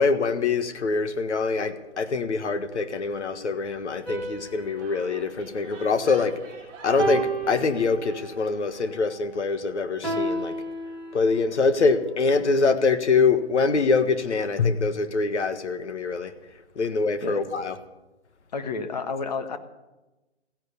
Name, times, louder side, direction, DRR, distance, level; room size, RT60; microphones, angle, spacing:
voice 1, 0.0-6.3 6.8-10.6 11.1-16.3 16.7-17.7, left 4 dB, 70° left, 10 dB, 1.7 m, -24 dB
sound 1, 4.0-6.4 7.0-8.5 10.0-11.5, right 2 dB, ahead, 1.2 m, -32 dB
sound 2, 4.6-9.1, right 5 dB, 15° right, 2.1 m, -48 dB
voice 2, 18.5-19.6, left 4 dB, 35° left, 8 dB, 1.4 m, -30 dB
15.5 x 11.0 x 8.3 m, 1.0 s
hypercardioid pair, 170°, 36 cm